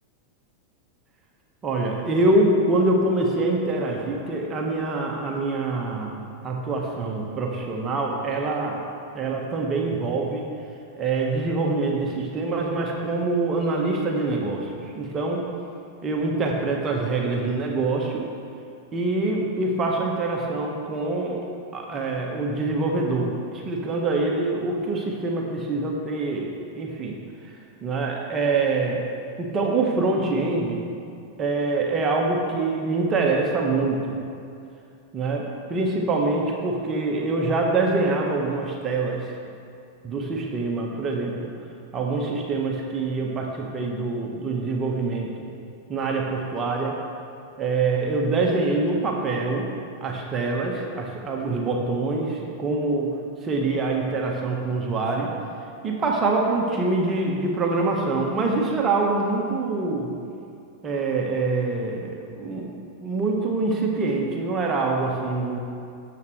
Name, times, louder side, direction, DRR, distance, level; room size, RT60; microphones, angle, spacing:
voice 1, 1.6-6.2 6.4-8.8 9.1-10.4 11.0-15.4 16.0-18.3 18.9-21.5 21.7-27.2 27.4-27.5 27.8-29.0 29.4-30.9 31.4-34.2 35.1-39.4 40.0-41.5 41.9-45.5 45.9-47.0 47.6-49.7 50.0-53.1 53.4-55.3 55.8-60.1 60.8-62.7 63.0-65.6, right 3 dB, 25° right, 0 dB, 1.6 m, -25 dB
19.5 x 8.0 x 3.4 m, 2.5 s
figure-of-eight pair, 90°, 0 cm